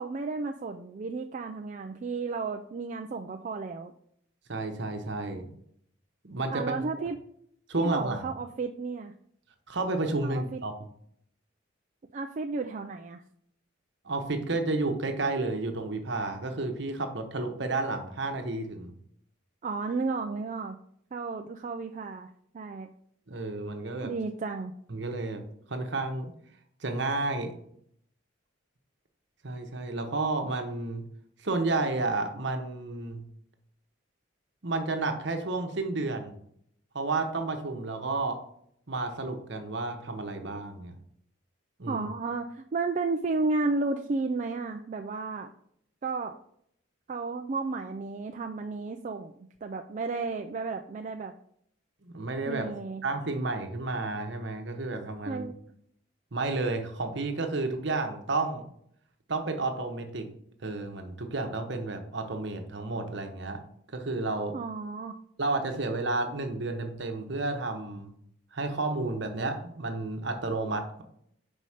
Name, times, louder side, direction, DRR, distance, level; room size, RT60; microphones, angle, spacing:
voice 1, 0.0-3.9 6.5-7.2 7.8-9.1 10.2-10.6 12.1-13.2 19.6-20.8 21.1-22.3 22.5-22.9 24.0-24.7 41.9-45.5 46.0-46.3 47.1-49.3 49.6-51.3 52.5-53.0 55.3-55.5 64.5-65.1, right 3 dB, 40° right, 4 dB, 0.3 m, -33 dB
voice 2, 4.5-5.5 6.2-6.8 7.7-8.2 9.7-10.7 14.0-18.9 23.3-24.1 24.9-25.4 25.7-26.3 26.8-27.5 29.4-31.0 31.4-33.2 34.6-36.3 36.9-38.4 38.9-40.9 41.8-42.1 52.0-52.7 53.0-55.5 56.3-58.7 59.3-60.3 60.6-63.6 63.9-64.5 65.4-68.1 68.5-71.0, right 3 dB, 60° right, 5 dB, 1.0 m, -31 dB
5.4 x 4.8 x 5.6 m, 0.69 s
head